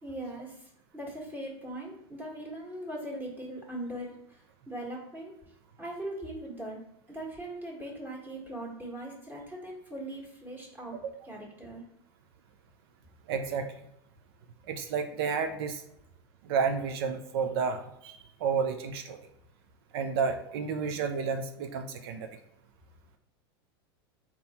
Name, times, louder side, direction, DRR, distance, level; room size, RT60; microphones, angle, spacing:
voice 1, 0.0-5.3 5.8-6.8 7.1-11.0 11.2-11.8, right 1 dB, 15° right, -2 dB, 1.5 m, -40 dB
voice 2, 13.3-13.7 14.7-15.8 16.5-19.2 19.9-22.3, right 5 dB, 70° right, 6 dB, 0.5 m, -31 dB
3.9 x 2.9 x 4.3 m, 0.79 s
hypercardioid pair, 110°, 13 cm